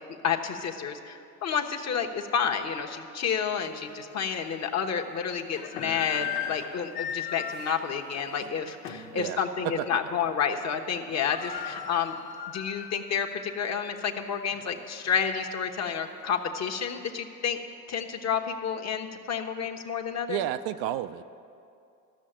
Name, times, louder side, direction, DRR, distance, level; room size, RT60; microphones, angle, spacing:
voice 1, 0.2-12.1 12.5-17.6 17.9-20.4, left 7 dB, 35° left, 3 dB, 1.1 m, -30 dB
sound 1, 3.6-3.7 4.3-4.4 5.3-9.2 9.6-9.8 10.1-10.5 10.8-10.9 11.1-13.0 13.4-13.5 14.2-15.5, left 8 dB, 85° left, 1.4 m, -38 dB
voice 2, 20.3-21.2, right 12 dB, 55° right, 11 dB, 0.5 m, -31 dB
14.0 x 6.4 x 8.9 m, 2.5 s
hypercardioid pair, 90°, 45 cm